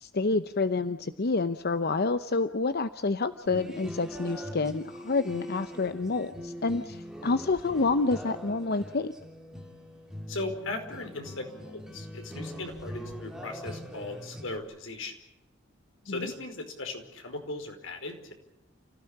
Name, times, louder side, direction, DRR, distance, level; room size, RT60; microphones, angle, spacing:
voice 1, 0.0-9.1 16.1-16.3, left 3 dB, 55° left, 11 dB, 0.8 m, -28 dB
sound 1, 3.5-14.6, equal, 5° right, 3.1 m, -42 dB
voice 2, 10.3-15.1 16.0-18.3, left 2 dB, 85° left, 5 dB, 5.0 m, -38 dB
29.5 x 16.0 x 8.7 m, 0.87 s
head